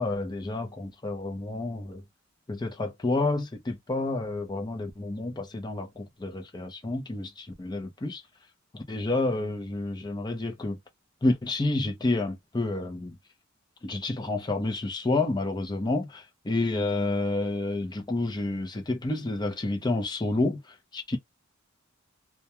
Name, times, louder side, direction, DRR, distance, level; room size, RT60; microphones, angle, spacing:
voice 1, 0.0-2.0 2.5-8.2 8.7-10.8 11.2-13.1 13.8-20.6 20.9-21.2, left 2 dB, 20° left, 0.6 m, -29 dB
2.2 x 2.2 x 2.8 m
head